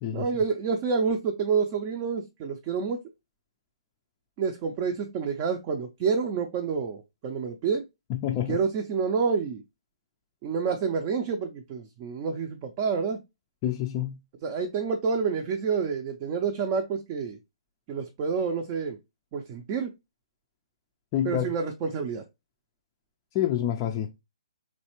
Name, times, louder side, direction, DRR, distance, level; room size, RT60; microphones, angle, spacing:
voice 1, 0.1-3.0 4.4-7.8 8.5-9.6 10.4-13.2 14.4-17.4 17.9-19.0 19.3-19.9 21.2-22.2, right 5 dB, 30° right, 0.5 m, -28 dB
voice 2, 8.1-8.6 13.6-14.2 21.1-21.5 23.3-24.2, left 11 dB, 25° left, 0.4 m, -27 dB
3.9 x 3.2 x 2.9 m
hypercardioid pair, 150°, 3 cm